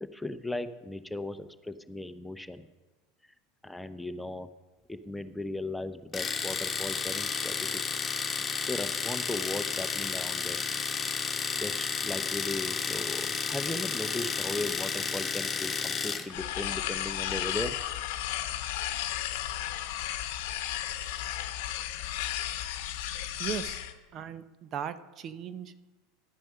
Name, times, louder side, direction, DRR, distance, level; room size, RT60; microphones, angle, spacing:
voice 1, 0.0-2.7 3.6-4.5 4.9-7.8 8.7-10.6 11.6-17.7, left 2 dB, 5° left, 11 dB, 0.7 m, -37 dB
Domestic sounds home sounds, 6.1-16.3, left 5 dB, 20° left, 1.4 m, -32 dB
sound 1, 16.3-23.9, left 12 dB, 60° left, 0.9 m, -34 dB
voice 2, 23.4-23.8 24.1-25.8, right 8 dB, 40° right, 13 dB, 0.7 m, -37 dB
12.0 x 9.1 x 5.4 m, 1.2 s
hypercardioid pair, 80°, 0 cm